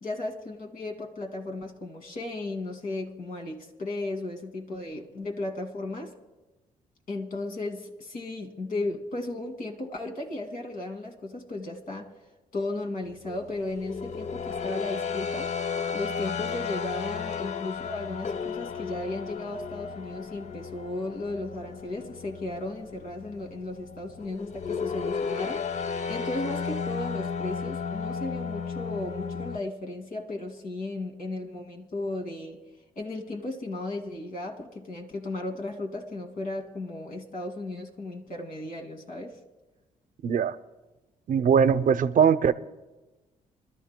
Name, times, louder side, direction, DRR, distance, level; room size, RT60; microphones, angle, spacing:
voice 1, 0.0-6.1 7.1-12.1 12.5-15.5 15.9-25.6 26.1-32.6 33.0-39.4, left 2 dB, 65° left, 2.5 m, -35 dB
sound 1, 13.2-29.6, left 6 dB, 50° left, 0.7 m, -34 dB
voice 2, 40.2-40.6 41.3-42.5, right 7 dB, 60° right, 0.7 m, -21 dB
26.5 x 13.0 x 2.3 m
supercardioid pair, 65°, 15 cm